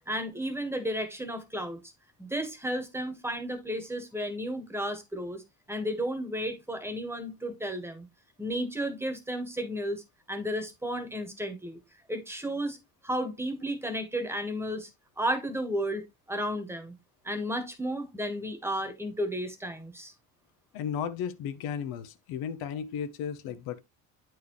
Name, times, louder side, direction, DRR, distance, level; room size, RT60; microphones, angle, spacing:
voice 1, 0.1-1.8 2.2-5.4 5.7-8.1 8.4-11.8 12.1-12.8 13.0-14.9 15.2-16.0 16.3-16.9 17.2-20.1, equal, 5° right, 1.3 m, -33 dB
voice 2, 20.7-23.8, left 8 dB, 90° left, 0.9 m, -34 dB
8.5 x 4.6 x 3.1 m
cardioid pair, 125°, 36 cm